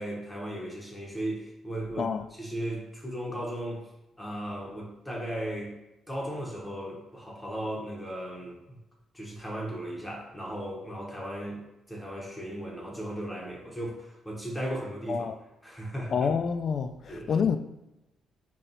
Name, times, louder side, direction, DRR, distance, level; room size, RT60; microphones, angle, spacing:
voice 1, 0.0-2.1 2.4-3.8 4.2-5.7 6.1-8.8 9.1-11.6 11.9-15.3 15.6-16.1 17.1-17.3, right 1 dB, 10° left, 0.9 m, -36 dB
voice 2, 16.1-17.6, left 6 dB, 50° left, 0.3 m, -27 dB
4.1 x 2.3 x 3.9 m
cardioid pair, 90°, 0 cm